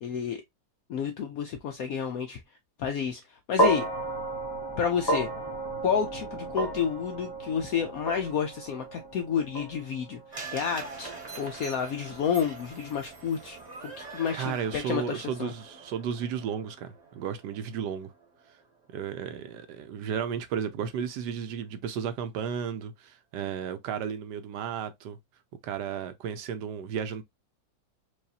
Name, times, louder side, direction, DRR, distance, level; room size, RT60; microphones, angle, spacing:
voice 1, 0.0-0.4 0.9-2.4 2.8-3.9 4.8-5.3 5.8-13.6 13.8-15.5, left 7 dB, 75° left, 0.8 m, -30 dB
sound 1, 3.6-11.9, right 1 dB, 30° left, 0.4 m, -32 dB
sound 2, 10.3-18.6 18.9-19.0, right 4 dB, 25° right, 1.0 m, -44 dB
voice 2, 14.3-18.1 18.5-18.6 18.9-25.2 25.6-27.2, right 7 dB, 70° right, 1.1 m, -33 dB
4.8 x 2.6 x 2.7 m
omnidirectional pair, 2.0 m